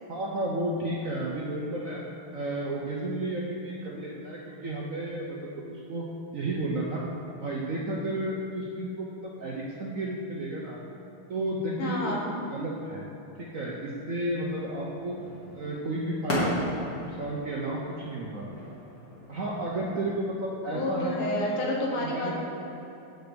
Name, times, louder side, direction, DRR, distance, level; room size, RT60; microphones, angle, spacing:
voice 1, 0.1-2.0 2.3-6.0 6.3-7.0 7.4-10.8 11.3-12.2 12.5-13.0 13.4-15.2 15.5-18.5 19.3-21.6 21.9-22.3, right 1 dB, 60° right, -3 dB, 0.8 m, -32 dB
voice 2, 11.8-12.3 20.7-22.3, left 2 dB, 85° left, -2 dB, 2.2 m, -29 dB
sound 1, 14.4-20.1, equal, 45° left, 2.2 m, -36 dB
7.9 x 6.4 x 5.1 m, 3.0 s
omnidirectional pair, 2.3 m